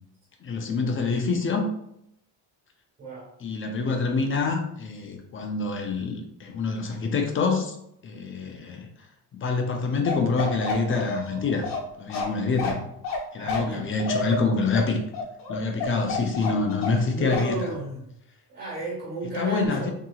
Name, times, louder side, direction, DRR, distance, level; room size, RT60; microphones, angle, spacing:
voice 1, 0.4-1.7 3.4-7.8 8.0-8.9 9.3-11.7 12.0-12.8 13.3-15.0 15.5-17.7 19.3-19.9, left 4 dB, 30° left, 3 dB, 0.4 m, -26 dB
voice 2, 3.0-3.3 13.4-13.9 17.1-18.1 18.5-19.9, right 2 dB, 25° right, -8 dB, 1.4 m, -33 dB
Bark, 10.1-17.1 17.3-17.5, left 4 dB, 75° left, 1.0 m, -30 dB
2.8 x 2.7 x 2.3 m, 0.76 s
cardioid pair, 130°, 42 cm